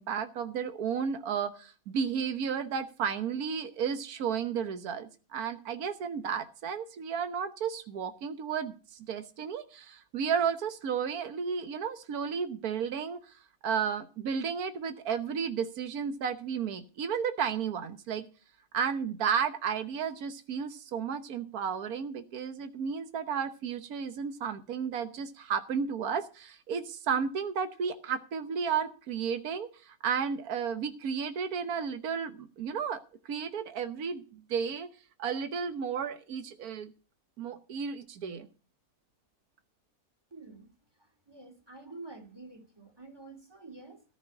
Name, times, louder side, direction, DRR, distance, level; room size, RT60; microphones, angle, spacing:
voice 1, 0.0-13.4 13.6-18.2 18.7-34.9 35.2-36.9 37.4-38.5, right 7 dB, 80° right, 1.6 m, -33 dB
voice 2, 40.3-40.7 40.9-44.0, right 3 dB, 15° right, 2.4 m, -48 dB
14.5 x 5.3 x 9.6 m
omnidirectional pair, 1.5 m